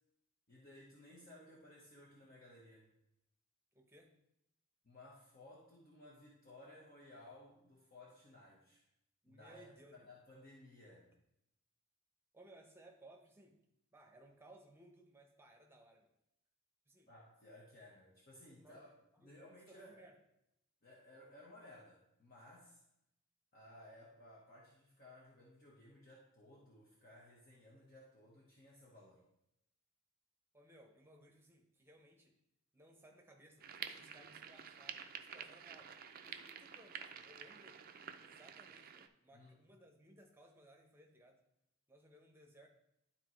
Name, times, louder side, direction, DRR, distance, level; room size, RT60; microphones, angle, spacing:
voice 1, 0.5-2.9 4.8-8.8 9.2-11.1 17.1-18.9 19.2-20.0 20.8-22.8 23.5-29.2 39.3-39.6, left 1 dB, 40° left, -4 dB, 1.2 m, -59 dB
voice 2, 3.7-4.1 9.2-10.1 12.3-13.6 13.9-16.1 16.9-17.1 18.6-18.8 19.1-19.3 19.7-20.2 30.5-32.4 32.7-35.9 36.2-37.8 38.2-41.4 41.9-42.7, right 1 dB, 10° right, 1 dB, 0.9 m, -62 dB
sound 1, 33.6-39.1, right 7 dB, 45° right, 0.4 m, -50 dB
11.5 x 4.2 x 3.2 m, 0.81 s
head